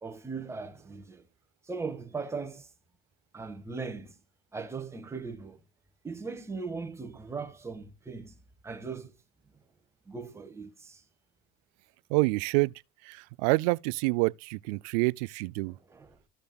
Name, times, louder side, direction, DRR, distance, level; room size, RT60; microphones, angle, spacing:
voice 1, 0.0-1.2 1.7-2.6 3.3-4.1 4.5-5.6 6.0-8.3 8.6-9.1 10.1-11.0 15.9-16.1, right 4 dB, 15° right, 1.6 m, -38 dB
voice 2, 12.1-12.7 13.0-15.8, right 24 dB, 80° right, 0.4 m, -27 dB
14.5 x 6.8 x 2.3 m
cardioid pair, 125°, 19 cm